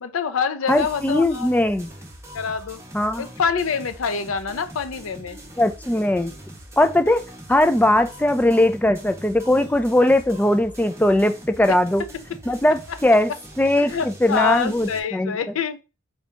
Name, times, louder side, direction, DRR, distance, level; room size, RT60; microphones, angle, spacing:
voice 1, 0.0-1.5 2.3-2.8 3.2-5.4 11.7-11.8 12.9-13.0 13.8-15.8, left 6 dB, 80° left, 0.5 m, -26 dB
voice 2, 0.7-1.9 2.9-3.2 5.6-6.3 6.8-7.2 7.5-12.0 12.5-13.3 13.6-15.4, left 1 dB, 10° left, 0.3 m, -19 dB
sound 1, 0.7-15.0, right 1 dB, 15° right, 0.8 m, -42 dB
4.9 x 2.7 x 3.4 m
head